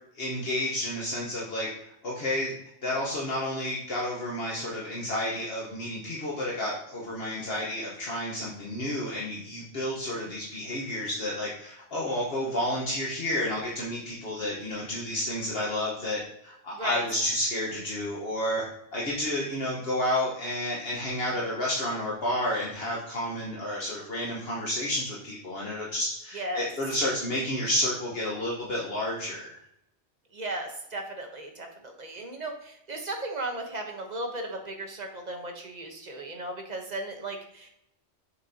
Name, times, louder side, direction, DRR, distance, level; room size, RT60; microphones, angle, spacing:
voice 1, 0.1-2.6 2.8-18.6 18.9-29.6, left 1 dB, 60° left, -5 dB, 1.4 m, -31 dB
voice 2, 16.7-17.0 26.3-26.7 30.3-37.7, right 2 dB, 40° right, 3 dB, 1.1 m, -36 dB
6.5 x 6.1 x 2.8 m, 0.75 s
omnidirectional pair, 1.2 m